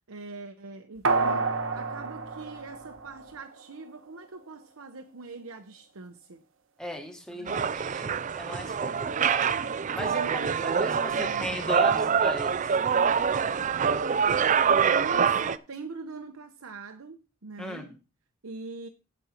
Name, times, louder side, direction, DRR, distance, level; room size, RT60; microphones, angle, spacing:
voice 1, 0.1-6.4 7.3-7.7 9.9-10.5 11.1-11.6 14.6-17.9 18.4-18.9, right 3 dB, 85° right, 0.9 m, -42 dB
sound 1, 1.0-3.6 4.0-4.1, right 4 dB, 65° right, 1.2 m, -29 dB
voice 2, 6.8-9.6 9.9-12.8 17.6-17.9, equal, 5° left, 1.5 m, -36 dB
sound 2, 7.5-15.6, right 6 dB, 35° right, 0.4 m, -25 dB
15.0 x 5.3 x 4.4 m
head